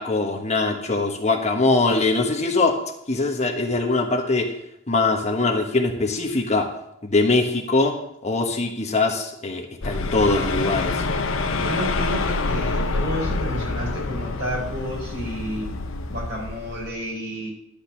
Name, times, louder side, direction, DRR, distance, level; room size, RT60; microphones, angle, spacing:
voice 1, 0.0-2.8 3.1-4.4 4.9-6.7 7.0-7.9 8.2-11.0, left 3 dB, 35° left, 1 dB, 1.3 m, -22 dB
sound 1, 9.8-16.9, left 3 dB, 85° left, 0.8 m, -27 dB
voice 2, 11.6-15.7 16.1-17.5, equal, 55° right, -3 dB, 5.1 m, -30 dB
12.0 x 5.2 x 7.4 m, 0.78 s
head